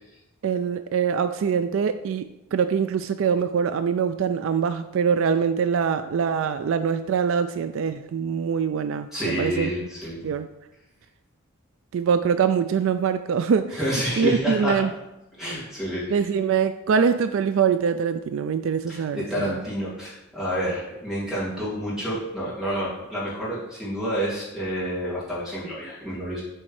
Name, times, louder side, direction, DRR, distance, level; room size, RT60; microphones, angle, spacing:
voice 1, 0.4-9.7 10.2-10.5 11.9-13.8 14.2-14.9 16.1-19.5, right 6 dB, 60° right, 10 dB, 0.3 m, -24 dB
voice 2, 9.1-10.3 13.7-14.9 15.4-16.3 18.9-26.4, equal, ahead, -9 dB, 2.6 m, -29 dB
8.0 x 4.4 x 4.8 m, 0.95 s
head